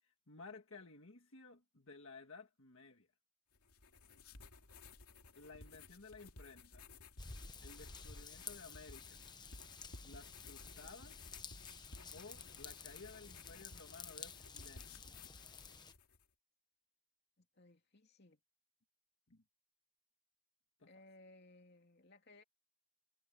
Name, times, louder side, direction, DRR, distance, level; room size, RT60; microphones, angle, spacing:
voice 1, 0.0-3.1 5.3-6.8 7.6-9.2 10.0-11.2 12.1-15.2 19.3-19.4 20.8-20.9, left 3 dB, 65° left, 1.7 m, -56 dB
sound 1, 3.5-16.2, left 3 dB, 90° left, 2.6 m, -57 dB
Raindrop / Vehicle horn car horn honking / Trickle dribble, 7.2-15.9, left 5 dB, 20° left, 1.0 m, -52 dB
voice 2, 17.4-18.4 20.9-22.4, left 2 dB, 45° left, 2.9 m, -62 dB
head